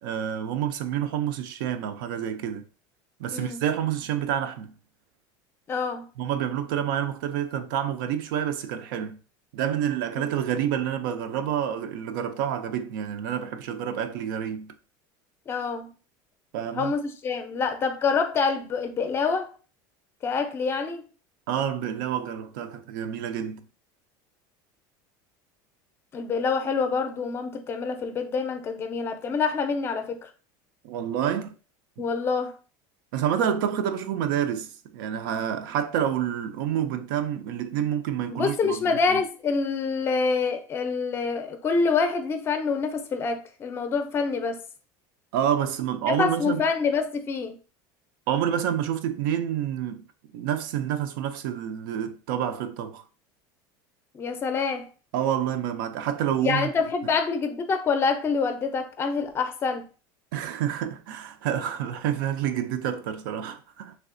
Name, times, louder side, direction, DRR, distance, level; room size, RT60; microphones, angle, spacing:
voice 1, 0.0-2.6 3.2-4.7 6.2-9.2 9.5-14.7 16.5-16.9 21.5-23.6 30.8-31.5 32.0-32.1 33.1-39.2 45.3-46.6 48.3-50.0 50.3-53.0 55.1-56.7 60.3-64.0, right 9 dB, 85° right, 0.4 m, -28 dB
voice 2, 5.7-6.1 10.2-10.3 15.5-15.9 16.7-19.5 20.2-21.0 26.1-30.3 32.0-32.6 38.3-44.6 46.1-47.6 54.1-54.9 56.4-59.9, left 5 dB, 20° left, 0.4 m, -26 dB
3.2 x 2.7 x 2.5 m
supercardioid pair, 145°, 11 cm